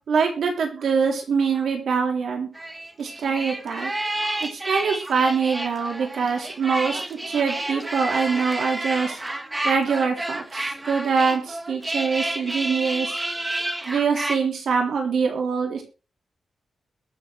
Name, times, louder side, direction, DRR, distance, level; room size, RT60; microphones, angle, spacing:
voice 1, 0.1-2.5 3.0-3.9 4.4-9.2 9.6-13.2 13.8-15.8, right 5 dB, 90° right, 1 dB, 3.5 m, -24 dB
sound 1, 2.5-14.4, right 1 dB, 15° right, 1.5 m, -30 dB
21.5 x 7.4 x 3.5 m, 0.33 s
wide cardioid pair, 165°, 0 cm